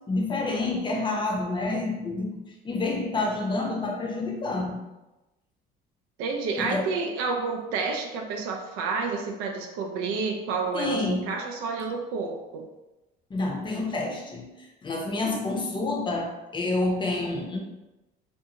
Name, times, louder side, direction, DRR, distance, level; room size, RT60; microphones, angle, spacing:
voice 1, 0.1-4.8 6.6-6.9 10.7-11.2 13.3-17.6, left 2 dB, 20° left, 0 dB, 0.6 m, -28 dB
voice 2, 6.2-12.6, right 4 dB, 85° right, 2 dB, 0.5 m, -30 dB
2.6 x 2.4 x 2.8 m, 1.0 s
cardioid pair, 105°, 21 cm